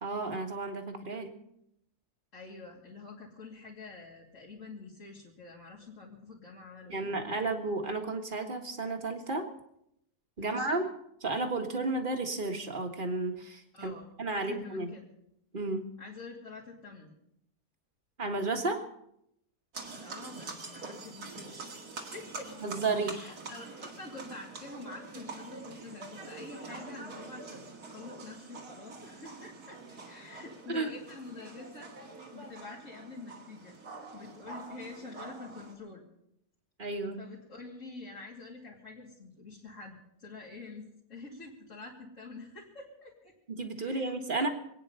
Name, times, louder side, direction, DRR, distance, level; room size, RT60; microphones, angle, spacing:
voice 1, 0.0-1.3 6.9-9.5 10.4-10.8 11.2-13.9 14.2-14.9 15.5-15.9 18.2-18.9 22.6-23.2 30.7-30.9 36.8-37.3 43.5-44.5, right 3 dB, 35° right, 4 dB, 1.8 m, -32 dB
voice 2, 2.3-7.1 10.4-10.8 13.7-15.1 16.0-17.1 19.9-21.7 22.0-22.5 23.0-31.9 32.3-36.0 37.2-43.3 43.8-44.5, left 3 dB, 50° left, -6 dB, 3.0 m, -47 dB
sound 1, 19.7-35.7, right 3 dB, 80° right, 2.6 m, -45 dB
25.5 x 9.5 x 5.5 m, 0.77 s
omnidirectional pair, 1.6 m